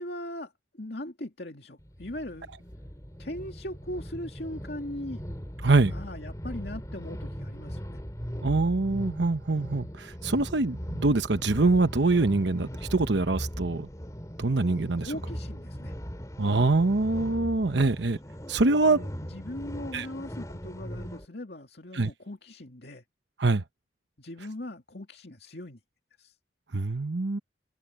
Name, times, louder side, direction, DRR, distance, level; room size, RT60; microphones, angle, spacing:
voice 1, 0.0-2.5 3.2-5.2 5.9-8.0 15.0-15.9 18.9-23.0 24.2-25.8 26.2-26.3, left 1 dB, 60° left, 2.5 m, -39 dB
sound 1, 1.8-21.3, equal, 20° left, 3.2 m, -39 dB
voice 2, 8.4-13.9 14.4-15.1 16.4-18.2 18.5-19.0 19.9-20.1 21.9-22.1 23.4-23.6 26.7-27.4, right 3 dB, 75° right, 1.0 m, -24 dB
open air
head